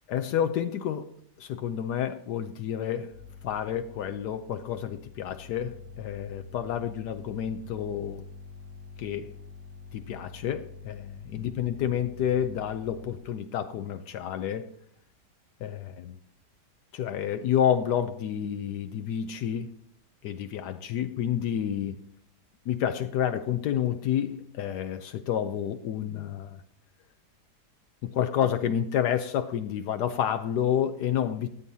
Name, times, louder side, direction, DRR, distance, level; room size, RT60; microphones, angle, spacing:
voice 1, 0.1-1.1 1.4-3.1 3.4-8.2 9.0-9.3 9.9-14.7 15.6-16.2 16.9-19.7 20.2-22.0 22.7-26.6 28.0-31.5, left 9 dB, 75° left, 9 dB, 1.2 m, -29 dB
sound 1, 3.1-13.2, left 5 dB, 70° right, 2.4 m, -47 dB
13.5 x 8.8 x 2.7 m, 0.67 s
omnidirectional pair, 1.8 m